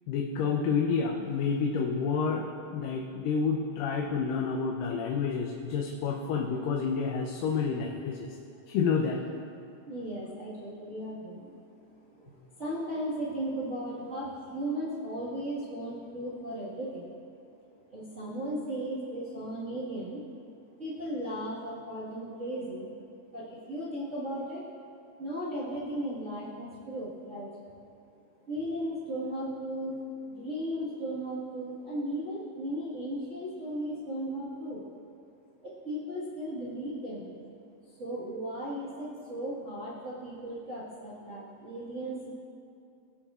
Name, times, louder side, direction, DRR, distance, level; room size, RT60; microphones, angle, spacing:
voice 1, 0.1-2.5 2.7-8.3 8.7-9.2, left 5 dB, 85° left, 0 dB, 2.3 m, -29 dB
voice 2, 9.8-11.6 11.8-17.1 17.9-20.2 20.8-22.9 23.3-24.6 25.2-27.6 28.5-29.9 30.2-34.8 35.6-37.4 37.8-42.3, right 1 dB, 35° right, -9 dB, 1.1 m, -36 dB
19.5 x 7.9 x 2.4 m, 2.6 s
omnidirectional pair, 3.8 m